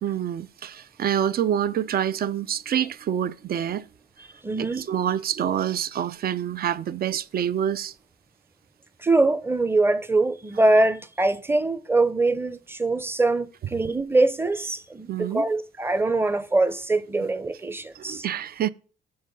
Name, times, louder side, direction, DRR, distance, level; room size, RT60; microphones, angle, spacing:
voice 1, 0.0-3.9 4.6-7.9 15.1-15.5 17.9-18.7, right 9 dB, 50° right, 0.5 m, -27 dB
voice 2, 4.4-4.9 9.0-18.3, right 2 dB, 10° right, 0.7 m, -23 dB
7.2 x 3.8 x 6.4 m
cardioid pair, 90°, 20 cm